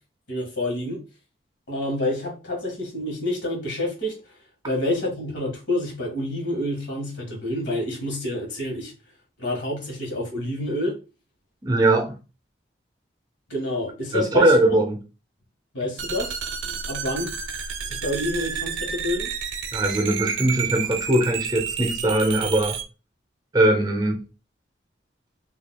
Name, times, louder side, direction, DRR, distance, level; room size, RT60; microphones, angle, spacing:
voice 1, 0.3-1.0 1.7-4.2 4.6-8.9 9.4-11.0 13.5-14.8 15.7-16.4 16.6-17.3 17.8-19.3, left 1 dB, 80° left, 1.5 m, -28 dB
voice 2, 11.6-12.2 14.1-15.0 19.7-22.8 23.5-24.2, right 1 dB, 20° right, 0.6 m, -20 dB
sound 1, 16.0-22.8, right 7 dB, 90° right, 0.5 m, -30 dB
3.7 x 2.8 x 2.2 m
head